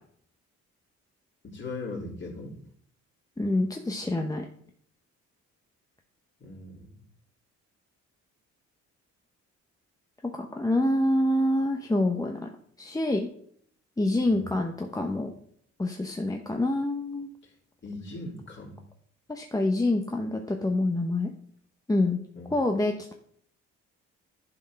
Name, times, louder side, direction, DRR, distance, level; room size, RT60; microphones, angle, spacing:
voice 1, 1.4-2.6 6.4-6.9 14.2-14.5 17.4-17.5 17.8-18.8 22.4-22.5, left 2 dB, 40° left, -3 dB, 3.4 m, -39 dB
voice 2, 3.4-4.4 10.2-12.5 12.8-13.3 14.0-15.3 15.8-17.3 19.3-21.3 21.9-22.2 22.5-23.1, left 1 dB, 10° left, 3 dB, 0.9 m, -26 dB
11.0 x 4.5 x 5.8 m, 0.64 s
cardioid pair, 90°, 30 cm